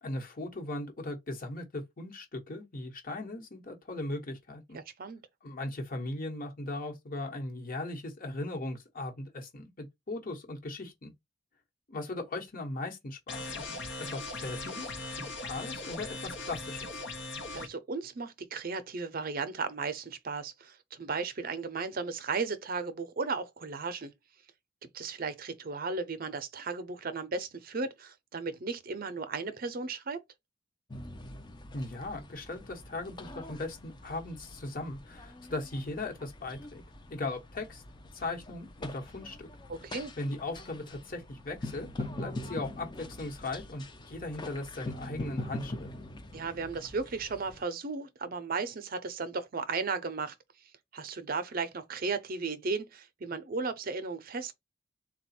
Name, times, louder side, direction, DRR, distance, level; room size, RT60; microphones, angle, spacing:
voice 1, 0.0-4.8 5.4-11.1 11.9-17.0 31.7-36.8 37.1-37.8 38.1-39.5 40.2-45.9, left 2 dB, 50° left, 1.1 m, -38 dB
voice 2, 4.7-5.2 17.5-24.1 24.9-30.2 39.7-40.1 46.3-50.3 50.9-54.5, right 4 dB, 50° right, 0.6 m, -35 dB
sound 1, 13.3-17.7, left 3 dB, 70° left, 0.8 m, -39 dB
sound 2, 30.9-47.6, left 2 dB, 25° left, 0.5 m, -43 dB
3.9 x 2.3 x 4.2 m
head